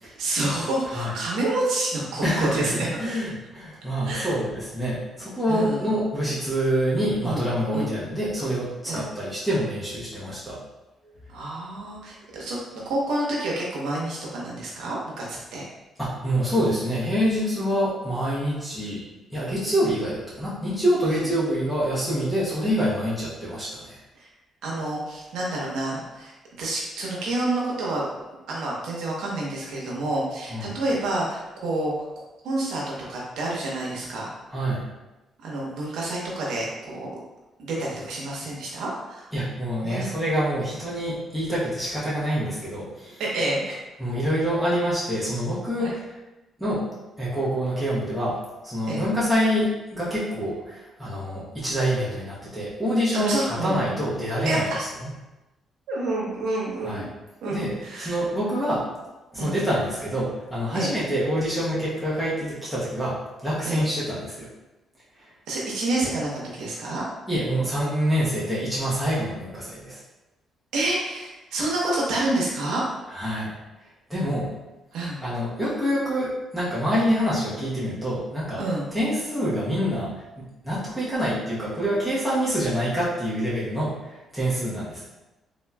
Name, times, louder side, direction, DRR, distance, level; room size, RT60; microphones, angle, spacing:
voice 1, 0.0-2.9 4.1-4.3 5.5-5.8 7.2-7.4 7.7-7.9 8.8-9.0 11.3-15.6 21.1-21.3 24.1-24.3 24.6-28.1 28.5-31.9 32.4-32.8 33.1-34.3 35.4-37.1 37.6-39.3 39.8-40.1 43.2-43.8 45.8-46.0 48.9-49.0 53.1-53.7 54.4-54.9 55.9-57.1 57.4-58.2 59.3-59.5 60.7-60.9 63.6-63.8 65.5-67.0 70.7-72.8 74.9-75.2 78.6-78.9, right 2 dB, 80° right, -4 dB, 0.8 m, -28 dB
voice 2, 2.2-10.6 16.0-19.0 19.3-24.0 30.5-30.7 34.5-34.8 39.3-43.2 44.0-46.0 46.6-46.9 47.2-54.6 56.8-57.0 57.5-57.7 58.0-58.9 59.3-64.5 67.3-70.0 73.1-73.5 74.1-74.5 75.2-78.6 78.9-85.0, equal, 5° left, -8 dB, 0.9 m, -26 dB
3.4 x 2.8 x 2.2 m, 1.0 s
cardioid pair, 90°, 0 cm